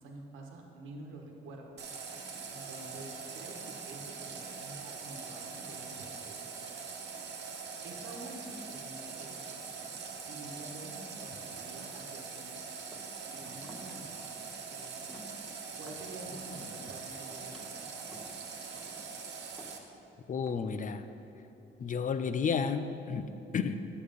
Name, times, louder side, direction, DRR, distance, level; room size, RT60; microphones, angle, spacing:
voice 1, 0.0-1.7 2.1-6.4 6.7-7.1 7.8-9.6 10.2-12.6 13.3-14.2 14.7-15.2 15.7-17.9, right 2 dB, 85° right, 1 dB, 1.2 m, -48 dB
Water tap faucet, 1.8-19.8, right 5 dB, 60° right, 1.2 m, -43 dB
sound 1, 12.9-13.3 13.6-14.0 14.4-14.6 15.0-16.2 16.5-16.9 17.3-17.7 18.1-18.4 18.8-19.1 19.6-20.0 20.5-20.9, equal, ahead, 1.7 m, -53 dB
voice 2, 20.3-21.0 21.8-23.8, left 6 dB, 40° left, 10 dB, 0.6 m, -32 dB
9.4 x 6.6 x 5.2 m, 3.0 s
cardioid pair, 90°, 20 cm